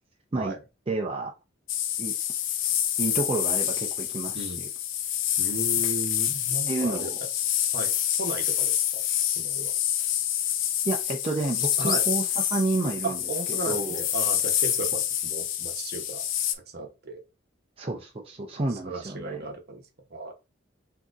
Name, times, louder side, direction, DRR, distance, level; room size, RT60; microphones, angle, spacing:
voice 1, 0.9-1.3 2.0-2.1 3.0-4.7 6.7-7.2 10.8-13.2 13.5-14.0 17.8-19.5, right 2 dB, 30° right, 0 dB, 0.6 m, -30 dB
sound 1, 1.7-16.5, left 11 dB, 75° left, 0.5 m, -27 dB
voice 2, 5.4-7.1 7.7-7.9 8.2-9.0 9.4-9.7 11.8-12.0 13.0-16.3 16.7-17.2 18.7-19.8 20.1-20.3, right 3 dB, 55° right, 4 dB, 0.9 m, -35 dB
sound 2, 11.6-12.6 14.0-15.0 16.4-16.6, left 2 dB, 20° left, 1.0 m, -41 dB
6.3 x 2.8 x 2.4 m, 0.29 s
head